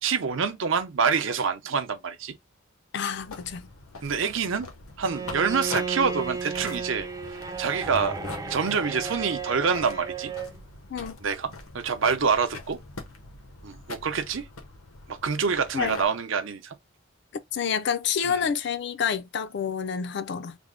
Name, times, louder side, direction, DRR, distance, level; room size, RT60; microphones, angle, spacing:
voice 1, 0.0-2.4 4.0-4.7 5.0-8.2 8.5-10.3 11.2-12.8 13.6-14.5 15.1-16.8 18.2-18.5, right 5 dB, 65° right, 0.6 m, -26 dB
voice 2, 2.9-3.7 10.9-11.2 15.7-16.0 17.5-20.6, left 7 dB, 55° left, 0.4 m, -28 dB
sound 1, 3.1-16.0, left 3 dB, 90° left, 0.9 m, -43 dB
Bowed string instrument, 5.0-10.6, right 4 dB, 15° right, 0.3 m, -34 dB
3.4 x 2.1 x 3.6 m
head